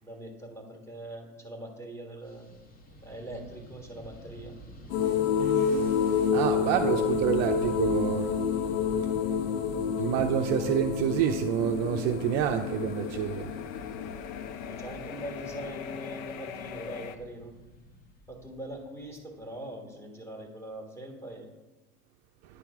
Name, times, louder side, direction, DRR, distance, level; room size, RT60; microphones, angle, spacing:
voice 1, 0.0-2.6 3.0-4.5 5.1-5.2 6.3-7.3 10.0-10.4 14.7-17.6 18.3-21.5, right 1 dB, 5° left, 1 dB, 1.5 m, -42 dB
Fixed-wing aircraft airplane, 2.2-19.7, left 1 dB, 25° left, 0.8 m, -46 dB
sound 1, 4.9-17.1, left 6 dB, 80° left, 0.7 m, -30 dB
voice 2, 5.0-8.3 10.0-13.5, right 10 dB, 45° right, 5 dB, 0.5 m, -28 dB
9.9 x 4.5 x 4.8 m, 1.2 s
supercardioid pair, 115°, 39 cm